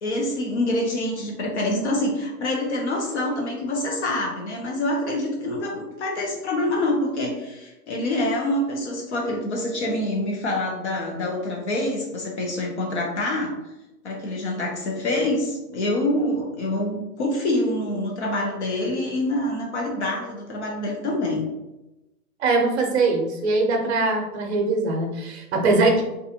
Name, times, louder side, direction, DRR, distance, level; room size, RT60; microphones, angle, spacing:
voice 1, 0.0-13.5 14.0-21.4, left 1 dB, 50° left, 0 dB, 0.7 m, -26 dB
voice 2, 22.4-26.0, right 3 dB, 45° right, 2 dB, 0.7 m, -22 dB
2.5 x 2.4 x 2.6 m, 0.98 s
hypercardioid pair, 160°, 45 cm